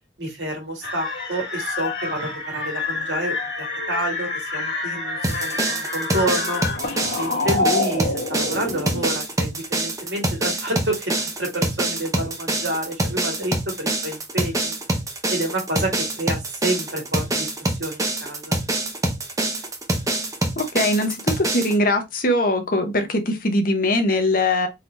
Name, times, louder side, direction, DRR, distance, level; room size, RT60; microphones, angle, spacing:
voice 1, 0.2-6.6 7.1-14.7 15.3-18.6, right 1 dB, 75° right, 1.7 m, -29 dB
sound 1, 0.8-9.1, left 3 dB, 65° left, 1.5 m, -27 dB
sound 2, 5.2-21.7, right 2 dB, 20° right, 0.7 m, -25 dB
voice 2, 20.6-24.7, left 1 dB, 50° left, 0.8 m, -21 dB
4.0 x 2.8 x 3.1 m
head